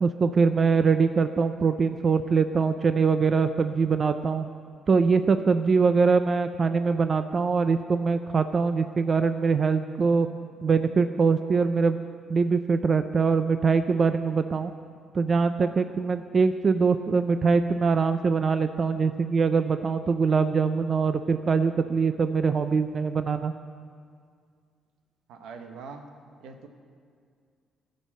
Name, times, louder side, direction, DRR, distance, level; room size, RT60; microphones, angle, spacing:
voice 1, 0.0-4.5 4.9-10.3 10.6-12.0 12.3-14.7 15.1-23.5, right 5 dB, 40° right, 9 dB, 0.4 m, -23 dB
voice 2, 25.3-26.0 26.4-26.7, right 5 dB, 90° right, 5 dB, 1.0 m, -42 dB
15.0 x 5.4 x 7.4 m, 2.1 s
cardioid pair, 90°, 0 cm